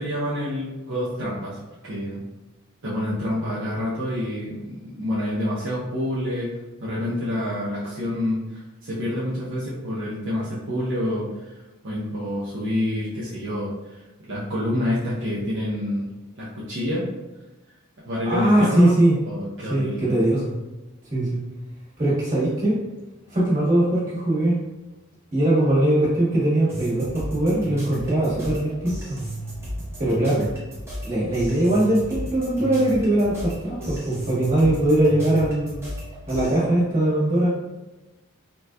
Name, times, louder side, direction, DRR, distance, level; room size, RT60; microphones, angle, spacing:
voice 1, 0.0-2.2 2.8-16.1 16.3-17.1 18.1-19.0 19.3-20.2, left 1 dB, 60° right, -9 dB, 0.7 m, -28 dB
voice 2, 18.2-19.1 19.7-20.5 21.1-21.4 22.0-22.8 23.3-24.6 25.3-29.2 30.0-30.5 31.0-35.8 36.3-37.5, right 1 dB, 35° right, -9 dB, 1.4 m, -21 dB
sound 1, 26.7-36.6, right 1 dB, 10° right, 0.8 m, -34 dB
4.0 x 2.2 x 2.2 m, 1.1 s
head